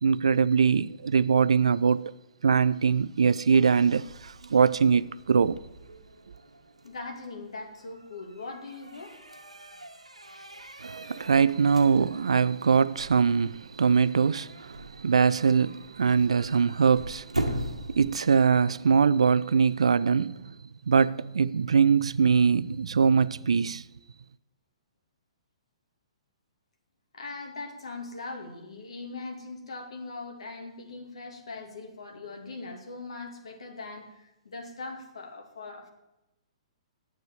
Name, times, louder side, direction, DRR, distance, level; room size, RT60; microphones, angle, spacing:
voice 1, 0.0-2.1 2.4-5.6 10.8-20.6 20.9-23.8, right 6 dB, 70° right, 0.4 m, -23 dB
sound 1, 3.7-18.7, right 1 dB, 90° right, 1.3 m, -41 dB
voice 2, 6.8-9.2 27.1-35.9, left 3 dB, 65° left, 2.4 m, -40 dB
9.3 x 8.1 x 8.9 m
figure-of-eight pair, 115°, 3 cm